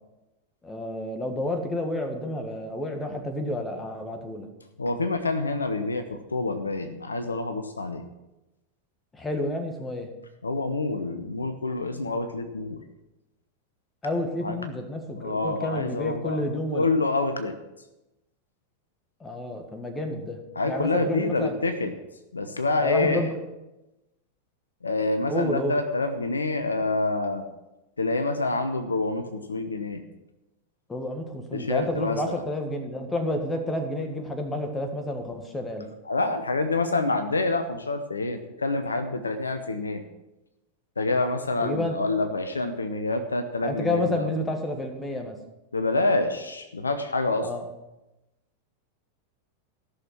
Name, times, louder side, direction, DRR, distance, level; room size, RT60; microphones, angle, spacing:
voice 1, 0.6-4.5 9.1-10.1 14.0-16.9 19.2-20.4 20.7-21.6 22.8-23.4 25.3-25.8 30.9-35.9 41.6-42.0 43.6-45.4 47.4-47.7, left 1 dB, 15° left, 5 dB, 1.7 m, -30 dB
voice 2, 4.8-8.0 10.4-12.8 14.4-14.6 15.1-16.4 16.7-17.5 20.6-21.9 22.3-23.3 24.8-27.5 28.0-30.0 31.5-32.4 36.1-40.0 41.0-44.3 45.7-47.5, left 2 dB, 75° left, 8 dB, 0.9 m, -27 dB
14.5 x 6.5 x 6.0 m, 0.97 s
figure-of-eight pair, 90°, 0 cm